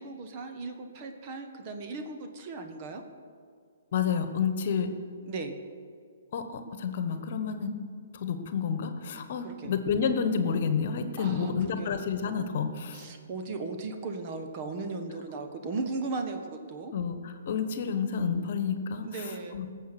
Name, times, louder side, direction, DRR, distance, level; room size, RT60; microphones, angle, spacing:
voice 1, 0.0-3.0 5.3-5.5 9.4-9.7 11.2-11.9 12.9-16.9 19.0-19.6, right 3 dB, 40° right, 6 dB, 1.5 m, -37 dB
voice 2, 3.9-4.9 6.3-7.7 8.1-13.0 16.9-19.0 19.5-19.7, left 6 dB, 55° left, 9 dB, 1.2 m, -29 dB
18.0 x 7.3 x 6.0 m, 2.2 s
hypercardioid pair, 135°, 0 cm